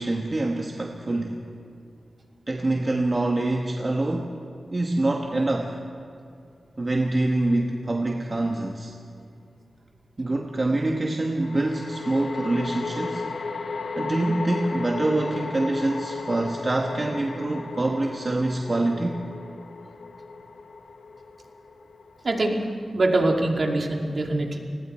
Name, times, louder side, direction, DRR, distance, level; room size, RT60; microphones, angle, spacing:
voice 1, 0.0-1.4 2.5-4.3 4.7-5.8 6.8-8.9 10.2-13.2 14.0-19.2, right 2 dB, 35° right, 1 dB, 1.4 m, -25 dB
sound 1, 8.4-8.5 11.4-22.8, left 4 dB, 80° left, 1.5 m, -35 dB
voice 2, 22.2-22.6 22.9-24.6, right 2 dB, 50° right, 1 dB, 2.4 m, -23 dB
30.0 x 20.0 x 4.4 m, 2.3 s
wide cardioid pair, 95°, 0 cm